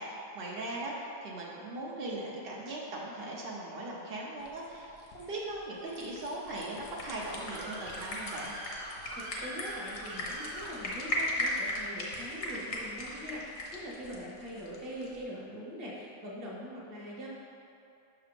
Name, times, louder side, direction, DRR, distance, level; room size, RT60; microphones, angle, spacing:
voice 1, 0.0-8.5, right 2 dB, 90° right, -4 dB, 0.5 m, -39 dB
sound 1, 4.4-15.2, left 1 dB, 55° left, 1.0 m, -38 dB
Screaming, 6.7-11.2, right 1 dB, 70° right, 1.4 m, -44 dB
voice 2, 9.2-17.3, equal, 40° right, -4 dB, 0.9 m, -42 dB
5.8 x 3.7 x 5.1 m, 2.7 s
omnidirectional pair, 2.1 m